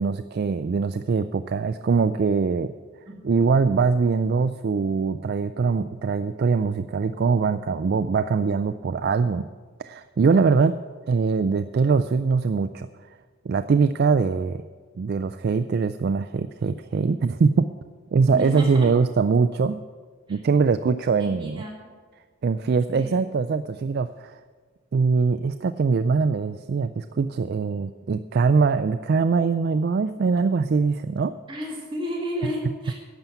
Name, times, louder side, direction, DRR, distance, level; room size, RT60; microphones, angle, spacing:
voice 1, 0.0-2.7 3.2-9.5 9.8-10.8 11.1-12.9 13.5-14.6 15.0-17.7 18.1-19.8 20.3-21.6 22.4-24.4 24.9-31.3 32.4-32.5, right 5 dB, 45° right, 11 dB, 0.3 m, -22 dB
voice 2, 3.1-3.5 18.3-18.9 20.3-20.4 21.2-21.9 22.9-23.1 31.5-32.9, equal, 20° right, -2 dB, 2.0 m, -33 dB
11.5 x 7.0 x 9.1 m, 1.5 s
head